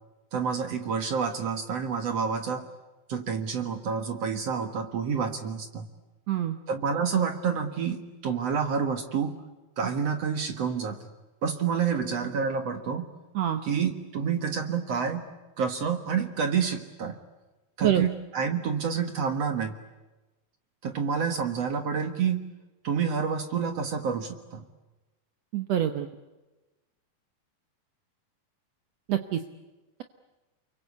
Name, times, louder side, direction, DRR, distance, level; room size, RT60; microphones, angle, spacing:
voice 1, 0.3-2.6 3.1-5.9 6.7-9.4 9.8-11.1 11.4-13.1 13.6-15.2 15.6-17.2 17.8-19.8 20.8-22.4 22.8-24.6, right 6 dB, 55° right, 7 dB, 2.1 m, -28 dB
voice 2, 6.3-6.6 13.3-13.6 17.8-18.1 25.5-26.1 29.1-29.4, right 11 dB, 75° right, 7 dB, 1.5 m, -25 dB
29.5 x 23.5 x 8.3 m, 1.1 s
omnidirectional pair, 4.4 m